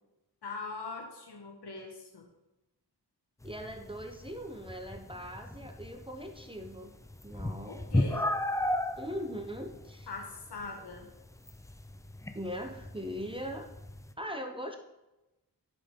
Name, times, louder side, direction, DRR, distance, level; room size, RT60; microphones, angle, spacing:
voice 1, 0.4-2.3 7.7-8.3 10.1-11.1, left 4 dB, 70° left, 1 dB, 1.3 m, -41 dB
sound 1, 3.4-14.1, left 1 dB, 10° left, 0.3 m, -36 dB
voice 2, 3.4-6.9 7.2-8.1 9.0-10.1 12.3-13.7 14.2-14.8, equal, 15° right, 3 dB, 0.7 m, -40 dB
9.9 x 5.8 x 3.6 m, 0.98 s
wide cardioid pair, 115°, 41 cm